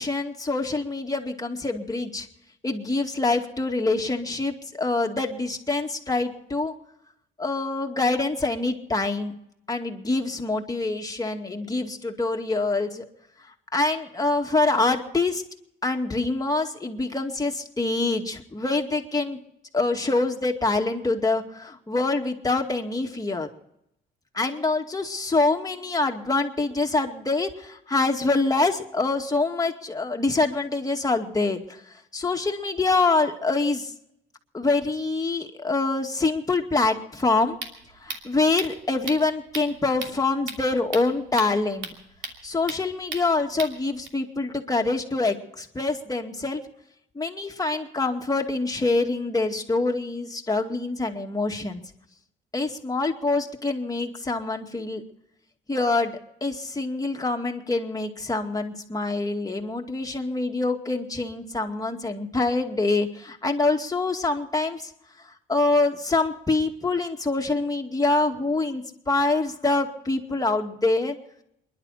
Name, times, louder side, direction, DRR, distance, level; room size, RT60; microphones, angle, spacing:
voice 1, 0.0-2.3 2.6-6.7 7.4-9.3 9.7-13.0 13.7-15.4 15.8-19.4 19.7-23.5 24.3-31.6 32.1-33.9 34.5-37.6 38.0-41.9 42.4-46.6 47.2-51.8 52.5-55.0 55.7-56.1 56.4-64.9 65.5-71.2, left 3 dB, 20° left, 3 dB, 2.3 m, -25 dB
sound 1, 37.2-44.1, right 4 dB, 70° right, 2.8 m, -38 dB
28.5 x 11.5 x 4.2 m, 0.79 s
cardioid pair, 90°, 20 cm